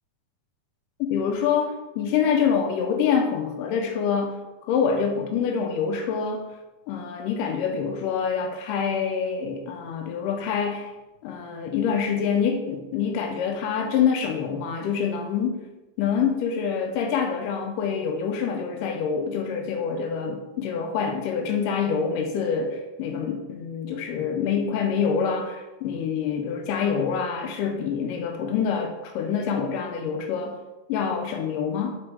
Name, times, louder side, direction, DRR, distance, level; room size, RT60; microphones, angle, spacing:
voice 1, 1.0-4.4 4.7-6.5 6.9-10.9 11.2-15.6 16.0-30.6 30.9-32.0, left 6 dB, 80° left, 3 dB, 2.1 m, -26 dB
7.5 x 4.3 x 4.7 m, 1.1 s
omnidirectional pair, 4.4 m